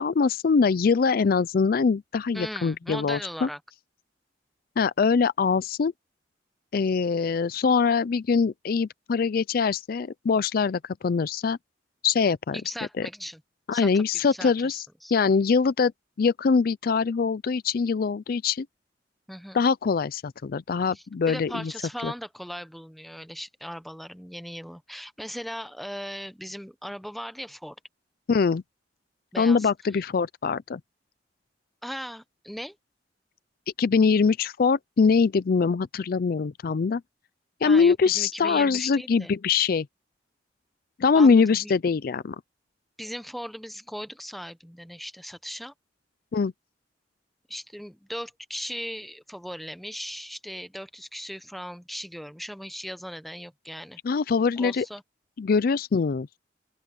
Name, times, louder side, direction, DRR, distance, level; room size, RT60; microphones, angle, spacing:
voice 1, 0.0-3.5 4.8-5.9 6.7-11.6 12.0-12.6 13.0-13.1 13.7-14.8 15.1-15.9 16.2-18.7 19.5-21.7 22.0-22.1 28.3-28.6 29.4-30.8 33.8-37.0 37.6-39.9 41.0-42.4 46.3-46.5 54.0-54.9 55.4-56.3, left 5 dB, 55° left, 0.4 m, -23 dB
voice 2, 2.3-3.6 12.5-13.4 13.7-15.1 19.3-19.6 20.9-27.8 29.3-29.7 31.8-32.8 37.6-39.3 41.1-41.7 43.0-45.7 47.5-54.0 54.6-55.0, equal, ahead, 0.8 m, -38 dB
open air
head